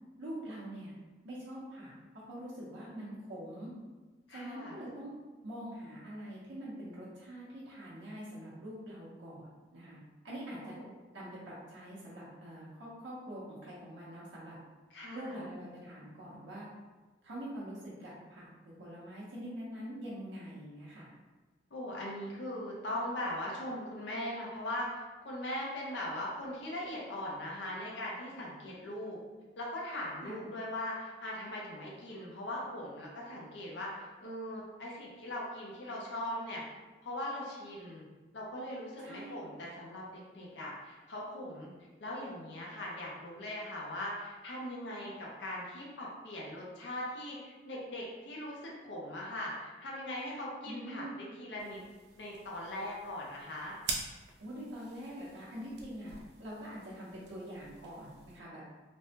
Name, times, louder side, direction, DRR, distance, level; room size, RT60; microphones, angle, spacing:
voice 1, 0.2-0.9 1.2-1.9 2.3-3.7 4.3-5.1 5.4-9.5 9.7-10.0 10.2-10.8 11.1-14.6 15.1-16.7 17.2-21.1 30.2-30.5 39.0-39.4 50.6-51.1 54.4-56.1 56.4-58.6, equal, 90° right, -7 dB, 0.8 m, -44 dB
voice 2, 4.3-4.8 10.6-10.9 14.9-15.4 21.7-24.9 25.2-29.2 29.6-36.6 37.0-38.1 38.3-40.0 40.3-41.7 42.0-51.8 52.1-53.8, left 1 dB, 80° left, -4 dB, 0.6 m, -40 dB
sound 1, 51.6-58.4, right 4 dB, 70° right, 0.4 m, -46 dB
3.3 x 2.1 x 2.7 m, 1.3 s
head